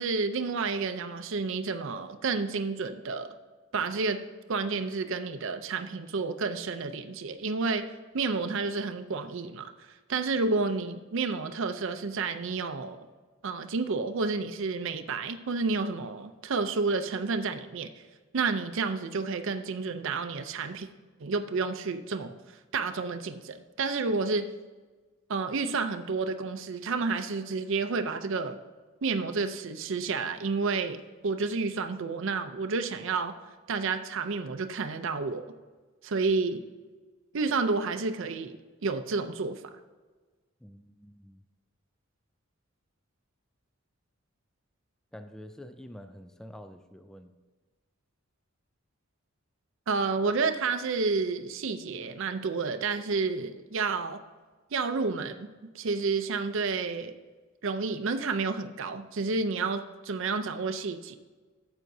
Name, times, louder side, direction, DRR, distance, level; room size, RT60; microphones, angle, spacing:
voice 1, 0.0-3.4 3.7-4.2 4.5-9.7 10.1-13.1 13.4-18.0 18.3-20.9 21.2-22.4 22.7-24.5 25.3-28.6 29.0-33.3 33.7-35.5 36.0-36.6 37.3-39.6 49.9-54.2 54.7-57.2 57.6-61.1, right 4 dB, 65° right, 8 dB, 0.5 m, -30 dB
voice 2, 40.6-41.4 45.1-47.3, equal, 5° left, 8 dB, 0.3 m, -47 dB
12.0 x 8.0 x 2.7 m, 1.3 s
head